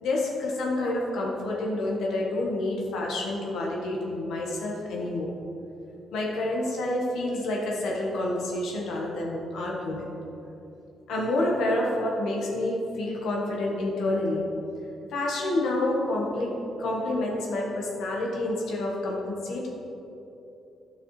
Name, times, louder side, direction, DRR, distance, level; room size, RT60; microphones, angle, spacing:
voice 1, 0.0-5.3 6.1-10.2 11.1-14.5 15.1-19.7, left 1 dB, 80° left, -2 dB, 1.1 m, -28 dB
9.4 x 6.2 x 3.1 m, 2.9 s
cardioid pair, 90°, 0 cm